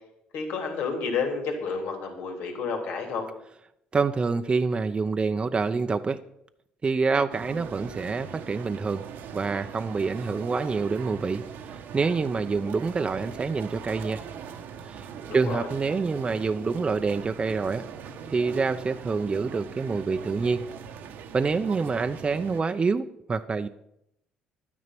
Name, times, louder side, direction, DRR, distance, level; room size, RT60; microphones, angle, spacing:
voice 1, 0.3-3.3 15.3-15.7, left 5 dB, 75° left, 3 dB, 3.2 m, -30 dB
voice 2, 3.9-6.2 6.8-9.0 9.3-11.4 11.7-14.2 14.8-15.1 15.3-17.9 18.3-20.6 21.3-23.7, right 4 dB, 30° right, 8 dB, 0.7 m, -26 dB
sound 1, 7.3-22.6, right 7 dB, 75° right, 1.2 m, -41 dB
12.0 x 9.6 x 6.0 m, 0.78 s
supercardioid pair, 75°, 3 cm